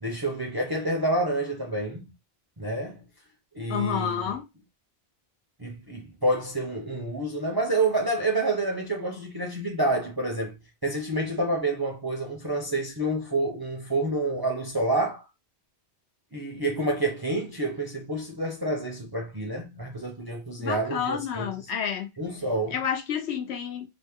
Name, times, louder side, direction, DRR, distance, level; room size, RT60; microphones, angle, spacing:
voice 1, 0.0-2.1 2.6-3.0 3.5-4.3 5.6-10.6 10.8-15.2 16.3-21.5 22.2-22.8, right 2 dB, 25° right, 0.5 m, -28 dB
voice 2, 3.7-4.4 20.6-22.1 22.7-23.9, left 8 dB, 85° left, 0.9 m, -29 dB
2.8 x 2.1 x 3.4 m
omnidirectional pair, 1.1 m